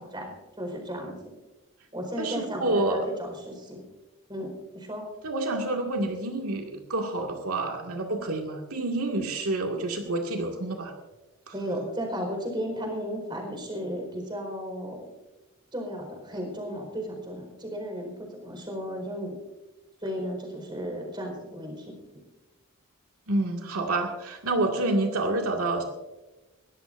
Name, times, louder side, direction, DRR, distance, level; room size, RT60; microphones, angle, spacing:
voice 1, 0.0-1.3 1.9-3.8 4.3-5.1 11.5-15.1 15.7-19.4 20.0-22.0, equal, 20° right, 2 dB, 4.6 m, -34 dB
voice 2, 2.2-3.0 5.2-10.9 11.5-11.6 23.3-25.8, right 2 dB, 90° right, 2 dB, 2.1 m, -28 dB
22.0 x 17.5 x 2.6 m, 1.1 s
head